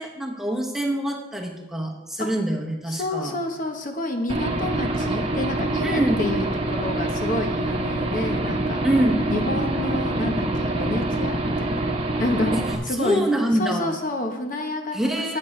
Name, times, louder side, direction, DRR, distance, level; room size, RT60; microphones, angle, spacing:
voice 1, 0.0-3.4 5.8-6.2 8.8-9.2 12.5-13.9 14.9-15.4, right 1 dB, ahead, -1 dB, 1.0 m, -25 dB
voice 2, 2.9-8.8 9.3-11.9 12.2-12.5 12.8-13.2 13.6-15.4, left 2 dB, 45° left, 4 dB, 1.1 m, -29 dB
Aircraft / Engine, 4.3-12.8, right 2 dB, 30° right, 1.1 m, -25 dB
13.5 x 8.6 x 3.3 m, 1.0 s
head